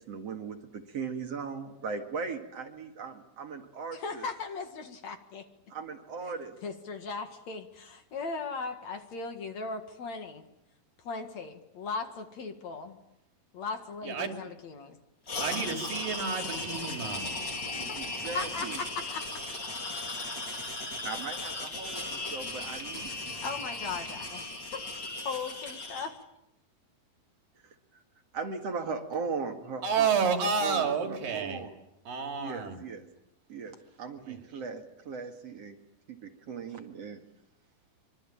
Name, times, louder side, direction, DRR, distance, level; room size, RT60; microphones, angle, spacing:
voice 1, 0.0-4.2 5.7-6.6 17.8-18.8 21.0-23.1 27.6-27.7 28.3-30.1 30.6-31.8 32.4-33.1 33.5-35.8 36.1-37.2, right 5 dB, 50° right, 5 dB, 2.8 m, -38 dB
voice 2, 3.9-5.5 6.6-10.4 11.0-13.0 13.5-15.0 17.9-18.0 18.3-19.4 23.4-24.8 25.2-26.2, left 4 dB, 55° left, 7 dB, 2.9 m, -38 dB
sound 1, 15.3-26.1, left 2 dB, 30° left, 4.6 m, -37 dB
voice 3, 15.4-17.4 29.8-31.6 32.1-32.8 34.2-34.4, right 5 dB, 70° right, 5 dB, 4.4 m, -30 dB
25.5 x 24.5 x 8.8 m, 0.83 s
omnidirectional pair, 4.1 m